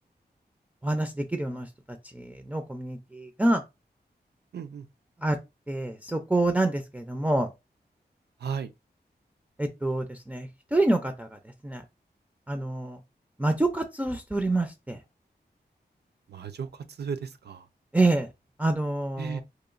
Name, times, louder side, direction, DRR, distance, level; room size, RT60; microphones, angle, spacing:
voice 1, 0.8-1.7 2.1-3.6 5.2-5.4 5.7-7.5 9.6-11.3 11.6-11.8 12.5-13.0 13.4-15.0 17.9-18.3 18.6-19.4, right 2 dB, 10° right, 0.4 m, -27 dB
voice 2, 4.5-4.9 8.4-8.7 16.3-17.7 19.2-19.4, right 6 dB, 70° right, 0.4 m, -35 dB
2.9 x 2.1 x 2.4 m
wide cardioid pair, 65°, 18 cm